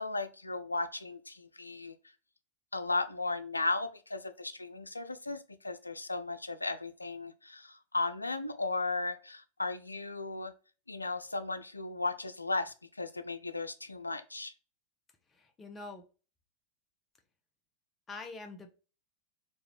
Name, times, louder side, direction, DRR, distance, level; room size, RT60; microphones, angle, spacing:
voice 1, 0.0-1.9 2.7-10.5 10.9-14.5, left 3 dB, 80° left, 0.3 m, -35 dB
voice 2, 15.3-16.0 18.1-18.7, left 3 dB, 20° left, 0.7 m, -45 dB
3.1 x 2.3 x 3.3 m
figure-of-eight pair, 90°, 0 cm